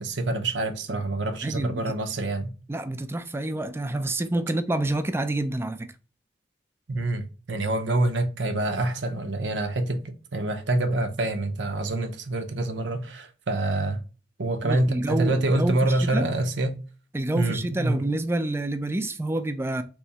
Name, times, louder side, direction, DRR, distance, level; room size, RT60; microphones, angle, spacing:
voice 1, 0.0-2.5 6.9-14.0 14.4-16.8 17.3-18.0, right 2 dB, 80° right, 0.7 m, -26 dB
voice 2, 2.7-5.9 14.6-16.3 17.1-19.8, right 1 dB, 15° right, 0.4 m, -28 dB
3.6 x 3.1 x 2.9 m
head